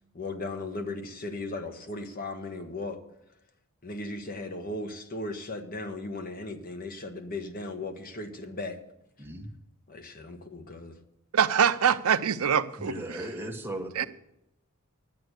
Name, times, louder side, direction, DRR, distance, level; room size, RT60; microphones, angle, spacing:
voice 1, 0.1-3.0 3.8-8.8 9.9-11.0, left 2 dB, 40° left, 1.2 m, -37 dB
voice 2, 9.2-9.5 10.6-10.7 12.8-14.1, right 1 dB, 10° right, 1.2 m, -37 dB
voice 3, 11.3-13.2 14.0-14.1, right 7 dB, 75° right, 0.6 m, -24 dB
11.0 x 7.8 x 8.1 m
head